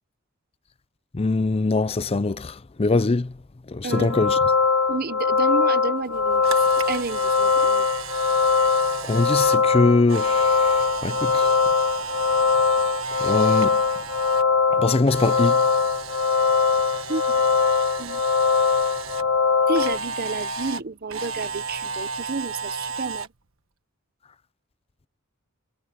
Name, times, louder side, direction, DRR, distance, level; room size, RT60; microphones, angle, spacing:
voice 1, 1.1-3.3 3.7-4.4 9.1-11.6 13.2-13.7 14.7-15.6, left 3 dB, 30° left, 0.5 m, -22 dB
voice 2, 3.8-4.2 4.9-6.6 6.9-7.9 17.1-17.2 18.0-18.2 19.7-23.3, right 3 dB, 45° right, 0.8 m, -30 dB
sound 1, 3.9-20.0, left 5 dB, 75° left, 1.3 m, -21 dB
Camera, 6.1-14.4 14.7-19.2 19.7-23.3, right 4 dB, 70° right, 1.5 m, -34 dB
head